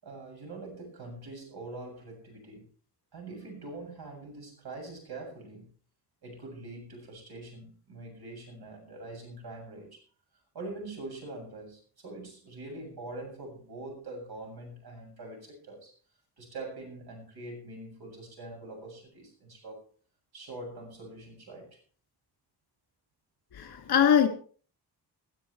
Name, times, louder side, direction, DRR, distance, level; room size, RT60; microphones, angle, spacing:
voice 1, 0.0-2.7 3.1-5.7 6.2-10.0 10.5-15.9 16.4-19.9 20.3-21.8, right 2 dB, 65° right, 7.7 m, -43 dB
voice 2, 23.6-24.3, left 8 dB, 65° left, 2.4 m, -22 dB
21.0 x 12.5 x 3.3 m
wide cardioid pair, 175°, 40 cm